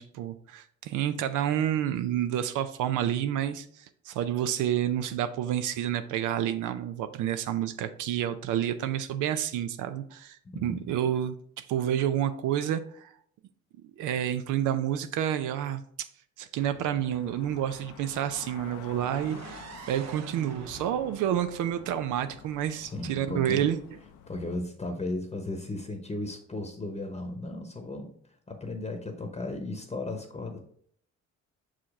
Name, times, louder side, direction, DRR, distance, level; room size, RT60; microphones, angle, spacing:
voice 1, 0.0-13.1 14.0-16.1 16.4-23.8, right 10 dB, 90° right, 10 dB, 0.5 m, -29 dB
voice 2, 10.4-10.9 22.8-23.7 24.3-28.1 28.5-30.6, left 2 dB, 20° left, 4 dB, 0.9 m, -35 dB
sound 1, 16.6-24.6, left 8 dB, 80° left, 0.7 m, -49 dB
sound 2, 19.0-22.9, right 6 dB, 60° right, 0.8 m, -46 dB
5.8 x 4.9 x 3.6 m, 0.63 s
cardioid pair, 90°, 30 cm